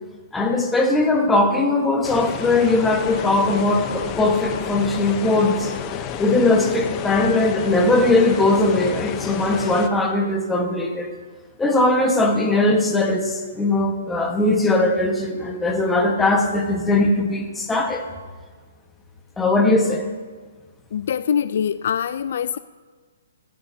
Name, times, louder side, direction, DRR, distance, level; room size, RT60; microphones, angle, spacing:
voice 1, 0.3-5.7 6.2-11.1 11.6-18.0 19.4-20.0, left 2 dB, 5° left, 2 dB, 1.3 m, -20 dB
sound 1, 2.0-9.9, left 9 dB, 20° left, 0.8 m, -31 dB
voice 2, 20.9-22.6, left 8 dB, 55° left, 14 dB, 0.4 m, -23 dB
26.0 x 15.0 x 2.8 m, 1.4 s
hypercardioid pair, 160°, 0 cm